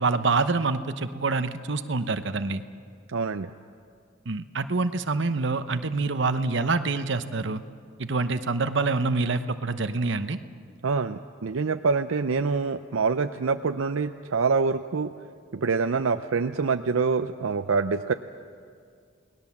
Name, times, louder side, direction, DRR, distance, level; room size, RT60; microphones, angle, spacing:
voice 1, 0.0-2.6 4.3-7.6 8.0-10.4, right 3 dB, 60° right, 10 dB, 0.9 m, -26 dB
voice 2, 3.1-3.5 10.8-15.1 15.5-18.1, right 4 dB, 80° right, 8 dB, 0.6 m, -25 dB
29.0 x 19.0 x 7.2 m, 2.2 s
head